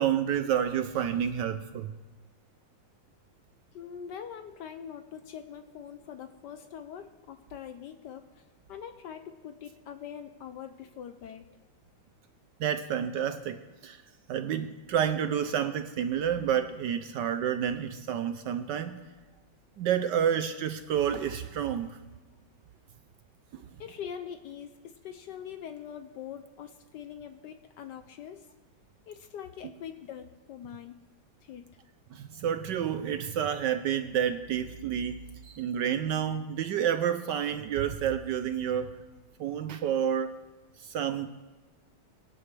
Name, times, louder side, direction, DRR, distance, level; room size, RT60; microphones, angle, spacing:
voice 1, 0.0-1.9 12.6-14.0 14.3-19.0 19.8-22.0 23.5-23.7 32.1-38.9 39.4-40.3 40.8-41.3, right 9 dB, 70° right, 9 dB, 1.1 m, -29 dB
voice 2, 3.7-8.4 8.7-11.6 23.8-28.5 29.1-31.0 31.4-31.6, left 8 dB, 70° left, 8 dB, 1.1 m, -43 dB
23.0 x 11.0 x 3.3 m, 1.2 s
omnidirectional pair, 2.3 m